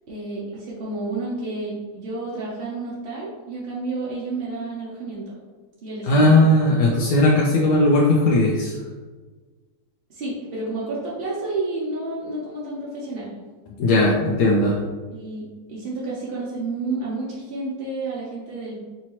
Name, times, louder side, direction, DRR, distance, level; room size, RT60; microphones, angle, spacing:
voice 1, 0.1-5.3 5.8-6.4 10.1-13.4 15.1-18.8, right 2 dB, 50° right, -6 dB, 0.7 m, -30 dB
voice 2, 6.0-8.8 13.8-14.8, left 1 dB, 85° left, -2 dB, 1.2 m, -17 dB
5.1 x 2.8 x 2.9 m, 1.4 s
omnidirectional pair, 1.7 m